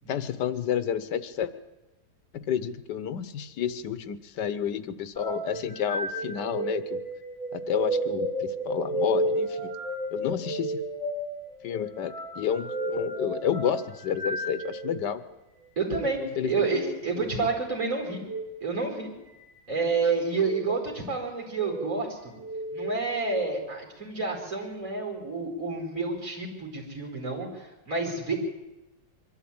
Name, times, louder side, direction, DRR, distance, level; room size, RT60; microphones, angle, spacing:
voice 1, 0.1-1.5 2.3-7.0 7.5-9.7 10.1-10.8 11.6-15.2 16.4-17.0 17.3-17.5, left 8 dB, 85° left, 13 dB, 1.6 m, -30 dB
sound 1, 5.2-15.1 15.9-16.1 18.1-18.5 19.3-19.8 20.3-20.6 21.4-21.9 22.4-23.4, right 1 dB, 20° left, 3.8 m, -32 dB
voice 2, 15.8-18.2 18.6-19.1 19.7-22.4 22.7-28.3, right 4 dB, 50° right, 1 dB, 5.0 m, -29 dB
23.0 x 13.0 x 8.8 m, 1.0 s
omnidirectional pair, 1.8 m